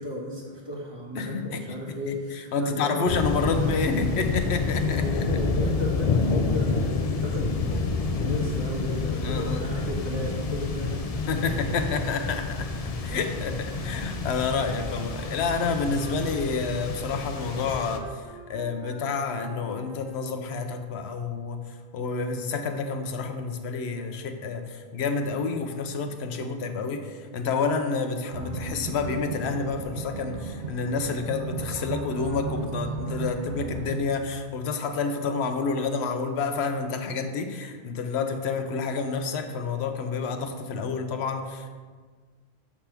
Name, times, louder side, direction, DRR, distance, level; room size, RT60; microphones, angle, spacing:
voice 1, 0.0-3.2 3.6-3.7 5.0-11.0, equal, 25° right, -4 dB, 1.5 m, -34 dB
voice 2, 1.1-1.8 2.1-5.0 9.2-9.7 11.3-12.7 13.0-41.7, left 4 dB, 80° left, 7 dB, 0.9 m, -29 dB
sound 1, 3.1-18.0, left 4 dB, 45° left, 0.5 m, -28 dB
Wind instrument woodwind instrument, 14.5-20.5, equal, 65° right, 1.3 m, -46 dB
sound 2, 28.3-34.0, right 4 dB, 90° right, 1.0 m, -35 dB
7.3 x 3.4 x 5.8 m, 1.5 s
omnidirectional pair, 1.1 m